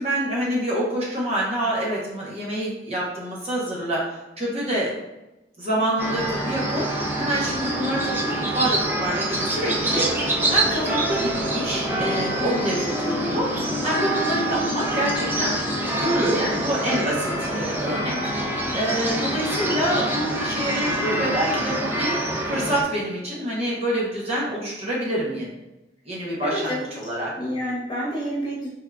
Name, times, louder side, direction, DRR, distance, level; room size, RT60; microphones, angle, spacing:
voice 1, 0.0-4.9 5.6-15.6 15.9-22.1 22.5-25.5 26.1-27.3, right 1 dB, 35° right, -5 dB, 0.8 m, -27 dB
sound 1, 6.0-22.8, right 1 dB, 10° right, 0.4 m, -26 dB
voice 2, 12.4-12.7 26.4-26.9 27.4-28.7, equal, 25° left, -6 dB, 1.1 m, -28 dB
3.5 x 3.4 x 2.2 m, 0.98 s
head